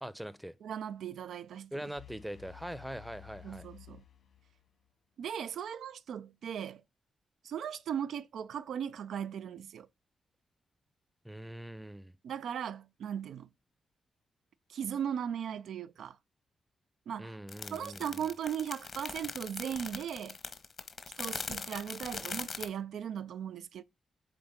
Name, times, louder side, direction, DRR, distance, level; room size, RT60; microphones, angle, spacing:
voice 1, 0.0-0.6 1.7-3.7 11.2-12.1 17.2-18.3, right 1 dB, 5° right, 0.6 m, -42 dB
voice 2, 0.6-1.7 3.4-4.0 5.2-6.8 7.4-9.9 12.2-13.5 14.7-16.2 17.1-17.4 17.7-20.4 21.2-23.8, right 8 dB, 85° right, 0.3 m, -38 dB
sound 1, 2.0-4.9, left 13 dB, 75° left, 2.1 m, -54 dB
sound 2, 17.5-22.7, left 5 dB, 60° left, 1.1 m, -40 dB
8.1 x 3.8 x 3.5 m
cardioid pair, 75°, 0 cm